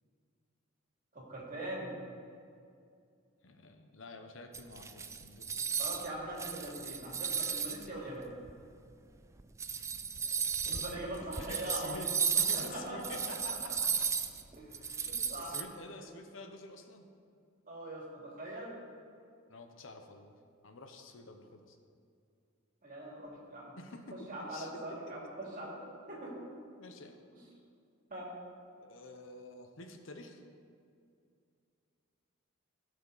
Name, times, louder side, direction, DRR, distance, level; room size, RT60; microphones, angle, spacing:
voice 1, 1.1-1.9 5.8-8.3 10.6-12.1 12.5-13.7 14.5-15.6 16.0-16.1 17.7-18.7 22.8-23.8 24.1-25.8 26.1-26.3 28.1-28.3, right 1 dB, 40° right, -4 dB, 2.5 m, -42 dB
voice 2, 3.4-5.7 10.1-14.1 15.0-17.1 19.5-20.3 20.6-21.8 23.8-24.8 26.8-27.2 28.8-30.4, left 2 dB, 65° left, 5 dB, 0.8 m, -49 dB
sound 1, 4.5-6.1 6.4-7.9 8.5-8.6 9.4-15.6, right 6 dB, 15° right, 0.3 m, -34 dB
16.5 x 6.2 x 4.0 m, 2.4 s
head